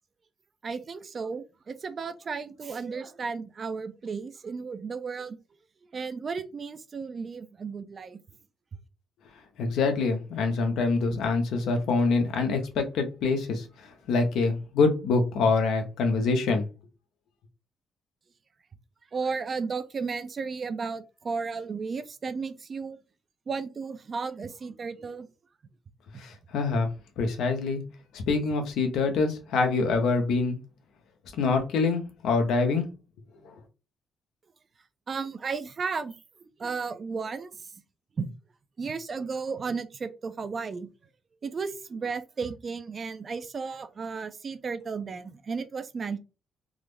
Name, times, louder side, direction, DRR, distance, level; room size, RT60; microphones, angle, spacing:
voice 1, 0.6-5.4 5.9-8.2 19.1-23.0 23.5-25.3 35.1-37.7 38.2-38.3 38.8-40.9 41.4-46.2, right 5 dB, 40° right, 0.5 m, -34 dB
voice 2, 9.6-16.7 26.2-27.8 28.1-30.6 31.4-32.9 33.4-33.5, left 4 dB, 80° left, 0.8 m, -25 dB
3.7 x 2.0 x 3.2 m
cardioid pair, 90°, 0 cm